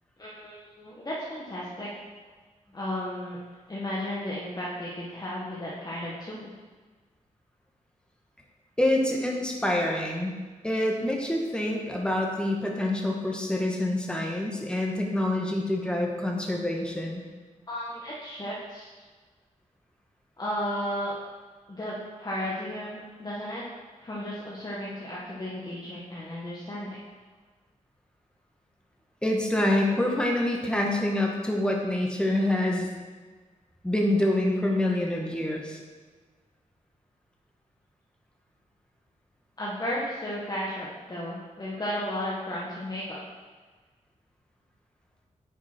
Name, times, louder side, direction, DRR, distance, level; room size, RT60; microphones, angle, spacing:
voice 1, 0.2-1.9 2.7-3.4 3.7-6.5 17.7-18.9 20.4-21.2 21.7-23.6 24.0-27.0 39.6-43.2, left 1 dB, 30° left, -6 dB, 1.8 m, -34 dB
voice 2, 8.8-10.3 10.6-17.2 29.2-32.9 33.8-35.8, left 1 dB, 5° left, 0 dB, 1.6 m, -26 dB
9.8 x 5.9 x 4.6 m, 1.4 s
cardioid pair, 75°, 14 cm